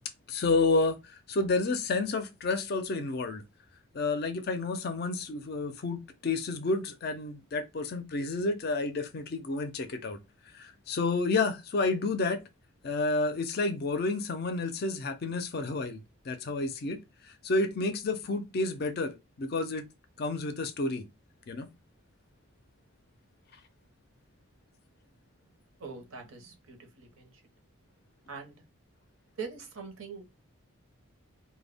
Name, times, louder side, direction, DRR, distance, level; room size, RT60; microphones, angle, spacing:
voice 1, 0.3-3.4 3.9-10.2 10.5-12.4 12.8-17.0 17.2-19.9 20.2-21.0 21.5-21.7, left 3 dB, 45° left, 0.4 m, -30 dB
voice 2, 25.8-27.3 28.3-28.5 29.4-30.3, right 5 dB, 75° right, 0.7 m, -42 dB
2.2 x 2.1 x 3.3 m
head